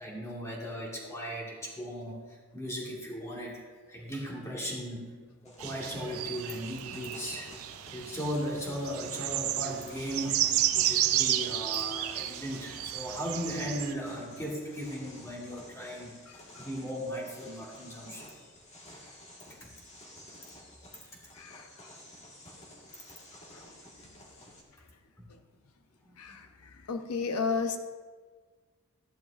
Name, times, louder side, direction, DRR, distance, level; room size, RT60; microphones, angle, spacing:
voice 1, 0.0-3.6 3.9-5.1 5.4-7.5 7.9-18.3 19.6-19.7 25.2-25.3 26.1-26.4, equal, 15° left, -3 dB, 1.9 m, -37 dB
sound 1, 5.4-24.6, left 1 dB, 30° left, 1.7 m, -51 dB
sound 2, 5.6-13.9, right 12 dB, 70° right, 0.5 m, -32 dB
voice 2, 26.9-27.8, left 5 dB, 85° left, 7 dB, 0.6 m, -32 dB
14.5 x 10.5 x 2.6 m, 1.5 s
head